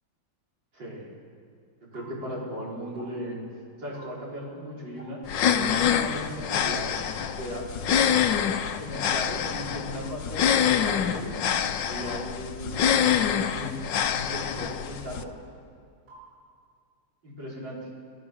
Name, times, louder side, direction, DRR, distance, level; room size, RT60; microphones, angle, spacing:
voice 1, 0.7-1.1 1.9-3.4 3.8-7.1 7.3-7.8 8.8-11.5 11.8-13.8 14.1-15.3 17.2-17.9, equal, 70° right, -5 dB, 5.3 m, -37 dB
sound 1, 1.9-2.1 2.9-3.1 3.9-4.1 5.0-5.1 5.9-6.1 6.9-7.1 7.9-8.1 9.0-9.2 10.0-10.2 11.0-11.2 12.0-12.2 13.0-13.2 14.0-14.2 15.1-15.3 16.1-16.3, right 2 dB, 45° right, 8.5 m, -49 dB
sound 2, 5.3-15.2, left 8 dB, 70° left, 1.6 m, -26 dB
26.5 x 17.5 x 7.2 m, 2.3 s
omnidirectional pair, 2.1 m